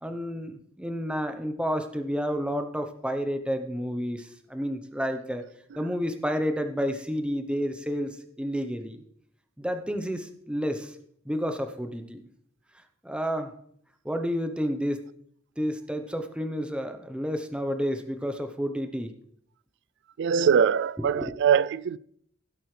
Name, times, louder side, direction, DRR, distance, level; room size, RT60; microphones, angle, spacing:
voice 1, 0.0-5.5 5.7-9.0 9.6-10.9 11.2-12.3 13.0-13.5 14.0-15.0 15.6-19.1 21.1-21.2, equal, 5° right, 0.9 m, -30 dB
voice 2, 20.2-22.0, right 7 dB, 60° right, 0.3 m, -23 dB
16.5 x 7.8 x 3.3 m
head